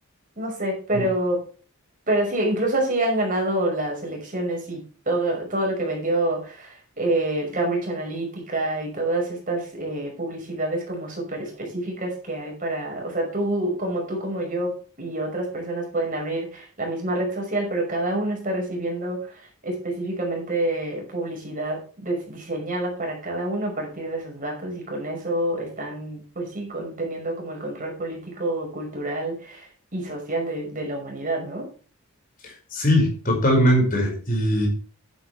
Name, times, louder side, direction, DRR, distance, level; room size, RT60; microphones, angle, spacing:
voice 1, 0.4-1.4 2.1-14.7 15.0-31.7, right 1 dB, 35° right, 1 dB, 5.7 m, -27 dB
voice 2, 32.7-34.7, equal, 40° left, 1 dB, 5.6 m, -20 dB
11.0 x 11.0 x 3.4 m, 0.38 s
head